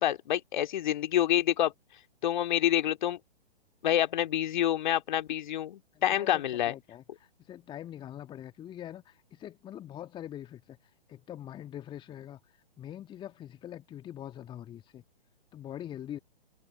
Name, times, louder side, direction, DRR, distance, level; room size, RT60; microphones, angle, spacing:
voice 1, 0.0-1.7 2.2-3.2 3.8-6.7, left 11 dB, 45° left, 2.4 m, -27 dB
voice 2, 5.9-7.0 7.5-10.8 11.1-12.4 12.8-15.0 15.5-16.2, left 11 dB, 15° left, 1.7 m, -43 dB
figure-of-eight pair, 120°, 32 cm